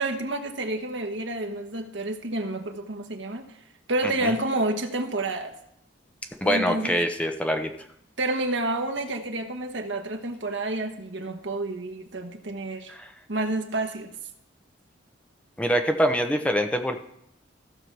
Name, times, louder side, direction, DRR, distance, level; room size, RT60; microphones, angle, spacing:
voice 1, 0.0-3.5 3.9-5.5 6.4-7.0 8.2-12.9 13.3-14.1, right 2 dB, 70° right, 4 dB, 1.2 m, -29 dB
voice 2, 4.0-4.3 6.4-7.7 12.9-13.1 15.6-17.0, equal, 5° left, 5 dB, 0.7 m, -24 dB
15.0 x 5.7 x 4.7 m, 0.75 s
head